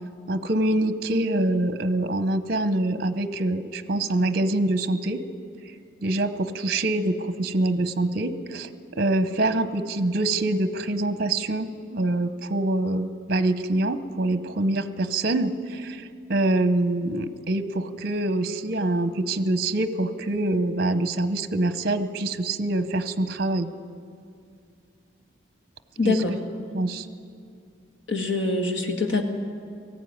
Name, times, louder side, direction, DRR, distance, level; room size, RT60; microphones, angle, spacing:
voice 1, 0.3-5.2 5.6-5.7 6.0-8.7 9.0-23.7 26.0-26.1 26.7-27.1, right 2 dB, 50° right, 12 dB, 0.8 m, -25 dB
voice 2, 26.0-26.4 28.1-29.2, left 3 dB, 80° left, 4 dB, 2.0 m, -24 dB
19.0 x 14.5 x 9.5 m, 2.3 s
head